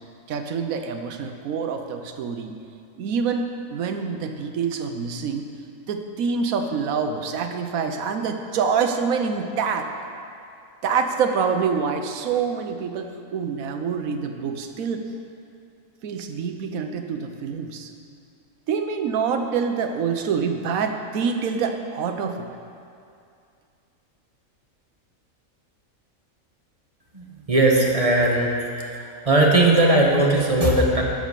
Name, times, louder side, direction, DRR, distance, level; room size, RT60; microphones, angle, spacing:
voice 1, 0.3-2.5 3.0-5.5 5.9-9.9 10.8-15.0 16.0-17.9 18.7-22.5, right 6 dB, 75° right, 6 dB, 1.2 m, -26 dB
voice 2, 27.1-28.5 28.9-31.0, right 2 dB, 25° right, -1 dB, 1.1 m, -19 dB
11.5 x 5.1 x 6.8 m, 2.5 s
omnidirectional pair, 1.5 m